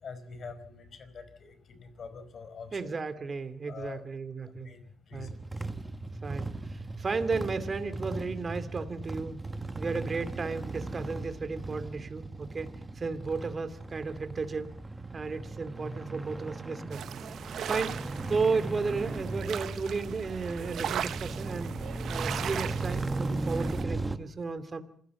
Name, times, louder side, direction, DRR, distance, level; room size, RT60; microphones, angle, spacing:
voice 1, 0.0-2.9 3.7-4.1 4.6-5.4, left 5 dB, 50° left, 12 dB, 4.7 m, -45 dB
voice 2, 2.7-4.7 5.1-5.3 6.2-9.4 9.8-14.7 15.1-17.2 17.7-18.0 18.3-21.7 22.1-24.8, right 4 dB, 35° right, 10 dB, 2.6 m, -34 dB
sound 1, 5.1-24.2, right 2 dB, 20° right, 1.5 m, -37 dB
sound 2, 16.9-23.8, right 9 dB, 70° right, 1.1 m, -38 dB
27.0 x 16.0 x 7.2 m, 0.64 s
cardioid pair, 90°, 0 cm